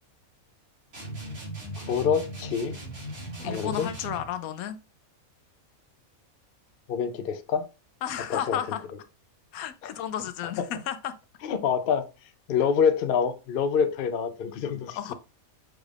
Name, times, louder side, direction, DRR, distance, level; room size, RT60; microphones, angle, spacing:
sound 1, 0.9-4.3, right 1 dB, 85° right, 2.8 m, -38 dB
voice 1, 1.8-2.7 3.4-3.9 6.9-7.7 8.3-8.6 9.8-9.9 10.4-10.7 11.4-12.1 12.5-15.1, left 7 dB, 60° left, 0.6 m, -26 dB
voice 2, 3.4-4.8 8.0-8.9 9.5-11.1 15.0-15.1, left 10 dB, 90° left, 1.1 m, -33 dB
6.3 x 2.4 x 3.3 m
omnidirectional pair, 1.5 m